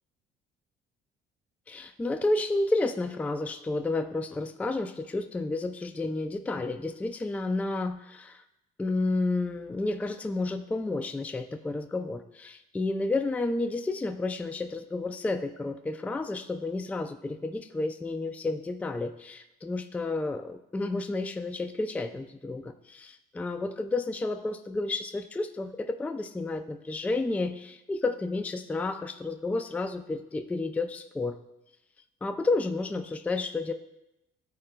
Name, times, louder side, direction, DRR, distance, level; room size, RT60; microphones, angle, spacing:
voice 1, 1.7-8.4 8.8-31.3 32.2-33.7, left 2 dB, 10° left, 8 dB, 0.3 m, -31 dB
13.0 x 4.4 x 2.2 m, 0.90 s
cardioid pair, 110°, 17 cm